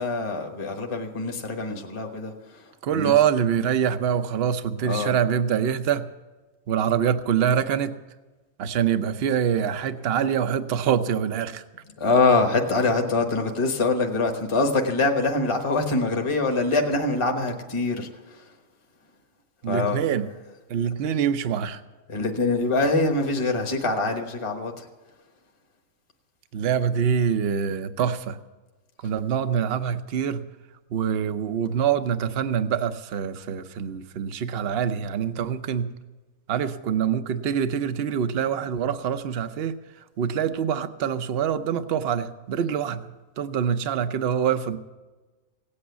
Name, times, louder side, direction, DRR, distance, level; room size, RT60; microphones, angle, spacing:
voice 1, 0.0-3.2 4.8-5.1 12.0-18.4 19.7-20.0 22.1-24.9, left 3 dB, 25° left, 3 dB, 1.2 m, -24 dB
voice 2, 2.8-6.1 6.7-7.9 8.6-11.6 19.6-20.3 20.7-21.8 26.5-28.4 29.0-30.4 30.9-35.9 36.5-39.7 40.2-43.1 43.4-44.8, right 8 dB, 55° right, 11 dB, 0.9 m, -25 dB
17.0 x 8.7 x 8.2 m, 1.2 s
omnidirectional pair, 1.4 m